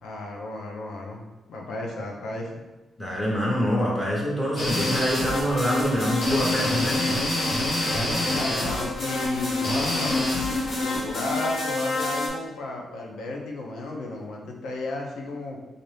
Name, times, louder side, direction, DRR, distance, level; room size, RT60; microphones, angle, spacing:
voice 1, 0.0-1.2 1.5-2.6 7.8-10.3 10.8-15.6, left 2 dB, 85° left, 0 dB, 0.7 m, -33 dB
voice 2, 3.0-7.0, equal, 20° left, -4 dB, 1.1 m, -25 dB
sound 1, 4.6-12.3, left 2 dB, 50° left, 0.9 m, -26 dB
4.0 x 2.5 x 3.3 m, 1.1 s
cardioid pair, 115°, 0 cm